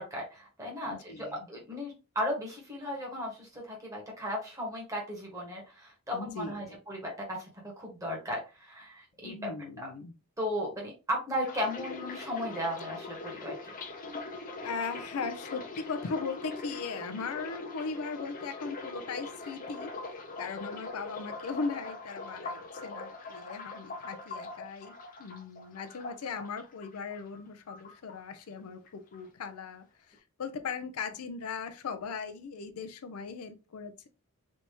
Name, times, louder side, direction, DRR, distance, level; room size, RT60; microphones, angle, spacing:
voice 1, 0.0-9.5 9.8-9.9 10.4-13.5 22.5-22.6, equal, 15° right, 1.2 m, -36 dB
voice 2, 0.9-1.5 6.1-6.8 9.2-10.1 14.6-19.9 20.4-34.1, left 5 dB, 85° left, 0.5 m, -38 dB
sound 1, 11.4-27.4 27.7-28.6 28.9-29.2, left 3 dB, 40° left, 0.6 m, -42 dB
3.4 x 2.7 x 2.8 m
head